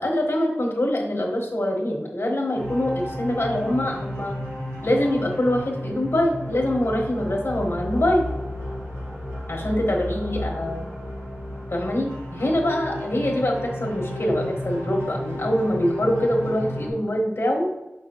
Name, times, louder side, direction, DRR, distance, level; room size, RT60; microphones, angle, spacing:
voice 1, 0.0-4.4 4.8-8.3 9.5-10.8 11.7-17.7, left 1 dB, 70° left, -1 dB, 1.3 m, -24 dB
sound 1, 2.5-16.9, left 1 dB, 80° right, 1.7 m, -32 dB
6.1 x 5.9 x 3.0 m, 1.0 s
wide cardioid pair, 50°, 4 cm